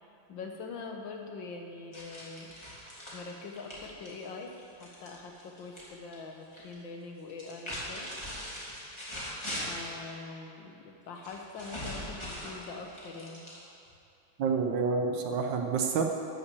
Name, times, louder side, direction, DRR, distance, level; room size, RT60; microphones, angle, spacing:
voice 1, 0.0-2.6 3.1-8.1 9.6-13.5, left 3 dB, 65° left, 3 dB, 1.7 m, -43 dB
sound 1, 1.9-5.9 6.1-6.7 7.3-10.0 11.2-13.9, equal, 15° left, 2.6 m, -41 dB
voice 2, 14.4-16.0, right 5 dB, 65° right, 3 dB, 1.4 m, -28 dB
12.5 x 5.7 x 8.2 m, 2.7 s
omnidirectional pair, 2.3 m